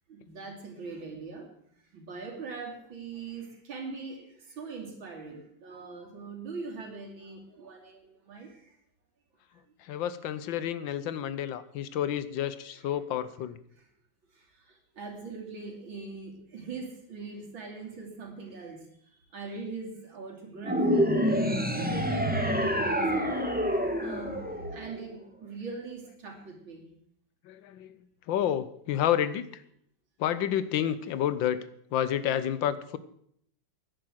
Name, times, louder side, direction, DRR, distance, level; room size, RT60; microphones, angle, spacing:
voice 1, 0.1-1.5 1.9-8.7 14.4-18.8 19.3-21.2 21.7-23.5 24.0-24.4 24.7-26.9, right 4 dB, 90° right, 1 dB, 3.5 m, -41 dB
voice 2, 9.8-13.6 27.4-28.0 28.3-29.6 30.2-31.7 31.9-33.0, left 10 dB, 80° left, 15 dB, 1.5 m, -30 dB
sound 1, 20.6-25.2, equal, 5° right, 1.2 m, -27 dB
11.0 x 9.8 x 7.6 m, 0.69 s
omnidirectional pair, 2.1 m